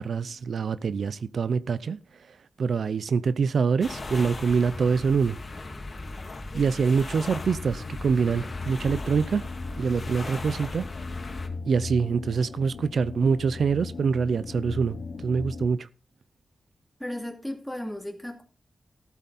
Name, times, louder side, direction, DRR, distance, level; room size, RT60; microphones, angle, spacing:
voice 1, 0.0-2.0 2.6-5.4 6.5-9.4 9.8-10.9 11.7-15.0 15.2-15.9, right 5 dB, 80° right, 0.5 m, -25 dB
sound 1, 3.8-11.5, left 2 dB, 50° left, 2.3 m, -38 dB
sound 2, 7.3-15.7, left 4 dB, 70° left, 0.8 m, -38 dB
voice 2, 17.0-18.4, left 1 dB, ahead, 2.7 m, -35 dB
15.0 x 8.4 x 4.1 m
wide cardioid pair, 95°, 0 cm